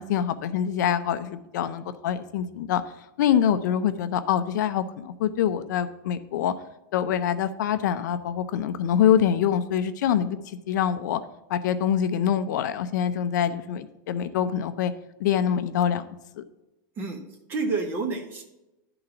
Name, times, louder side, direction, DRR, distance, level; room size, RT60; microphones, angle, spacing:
voice 1, 0.0-2.8 3.2-6.5 6.9-11.2 11.5-14.9 15.2-16.1 16.4-16.5, left 9 dB, 60° left, 11 dB, 0.5 m, -25 dB
voice 2, 17.0-18.4, right 3 dB, 20° right, 4 dB, 0.8 m, -29 dB
10.5 x 3.9 x 5.7 m, 0.96 s
supercardioid pair, 180°, 11 cm